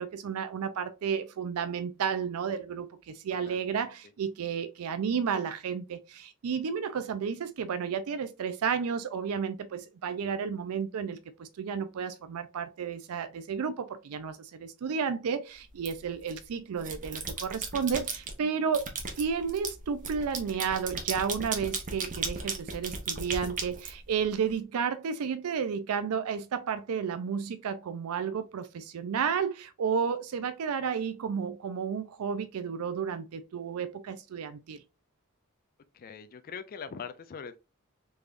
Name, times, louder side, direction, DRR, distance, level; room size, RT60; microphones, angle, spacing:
voice 1, 0.0-18.9 19.2-34.8, right 6 dB, 80° right, 0.4 m, -32 dB
voice 2, 3.5-3.9 35.9-37.6, left 6 dB, 40° left, 0.4 m, -42 dB
sound 1, 15.8-16.4 16.8-18.3 18.7-24.5, right 4 dB, 35° right, 0.8 m, -36 dB
3.4 x 3.3 x 2.5 m
head